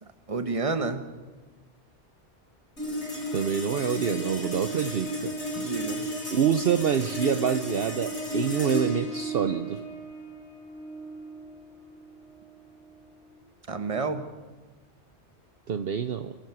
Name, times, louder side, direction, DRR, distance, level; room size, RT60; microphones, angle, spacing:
voice 1, 0.0-1.0 5.5-6.1 13.7-14.3, right 4 dB, 30° right, 9 dB, 1.3 m, -30 dB
sound 1, 2.8-13.4, equal, 80° left, 6.3 m, -34 dB
voice 2, 3.3-5.4 6.3-9.8 15.7-16.4, right 7 dB, 60° right, 9 dB, 0.9 m, -26 dB
26.5 x 13.0 x 8.0 m, 1.3 s
omnidirectional pair, 1.2 m